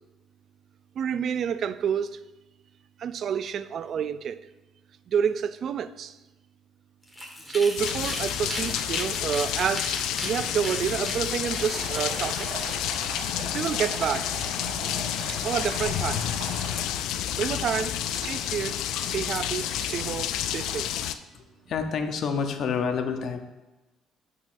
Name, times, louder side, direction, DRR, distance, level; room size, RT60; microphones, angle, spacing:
voice 1, 1.0-2.2 3.0-4.4 5.1-6.1 7.5-12.5 13.5-14.4 15.3-16.3 17.4-20.9, right 7 dB, 50° right, 0.3 m, -29 dB
Salt mill, 7.0-12.7, left 1 dB, 5° left, 1.3 m, -37 dB
sound 1, 7.8-21.1, left 11 dB, 80° left, 0.3 m, -30 dB
Stream, 11.6-16.8, right 4 dB, 80° right, 1.1 m, -39 dB
voice 2, 21.3-23.4, left 6 dB, 55° left, 0.7 m, -28 dB
11.5 x 4.6 x 2.6 m
cardioid pair, 120°, 0 cm